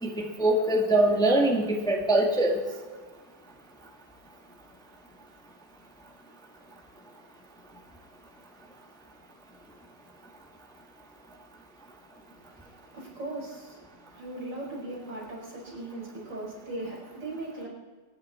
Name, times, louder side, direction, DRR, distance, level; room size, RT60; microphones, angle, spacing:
voice 1, 0.0-2.6, right 1 dB, ahead, -1 dB, 1.6 m, -23 dB
voice 2, 12.9-13.8 14.1-17.7, right 2 dB, 75° right, -4 dB, 6.3 m, -38 dB
25.5 x 10.0 x 4.5 m, 1.4 s
omnidirectional pair, 2.0 m